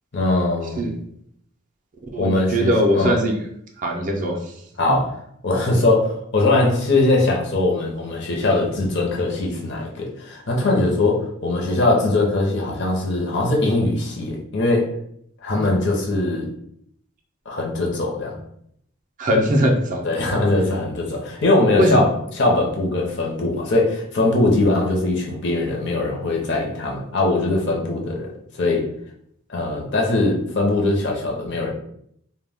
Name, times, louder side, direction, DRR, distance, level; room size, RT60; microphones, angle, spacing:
voice 1, 0.1-0.8 2.2-3.1 4.8-5.2 5.4-14.9 15.4-16.5 17.5-18.4 20.0-22.1 22.3-28.3 28.6-28.9 29.5-31.7, left 2 dB, 50° left, -1 dB, 0.6 m, -21 dB
voice 2, 2.1-3.3 3.8-4.5 4.9-5.0 19.2-20.1 21.8-22.1, equal, 35° right, 1 dB, 0.3 m, -20 dB
2.1 x 2.1 x 3.3 m, 0.71 s
head